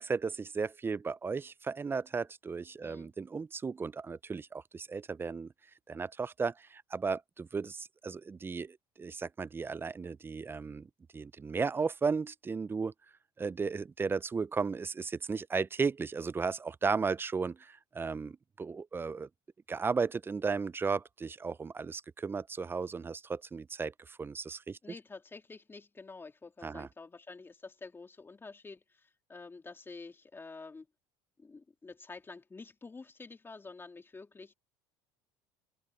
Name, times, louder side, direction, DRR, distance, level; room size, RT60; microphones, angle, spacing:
voice 1, 0.0-5.5 5.9-10.9 11.1-12.9 13.4-19.3 19.7-24.8 26.6-26.9, right 5 dB, 20° right, 0.4 m, -35 dB
voice 2, 2.8-3.1 24.8-30.9 31.4-34.5, left 3 dB, 20° left, 2.6 m, -49 dB
open air
supercardioid pair, 95°, 12 cm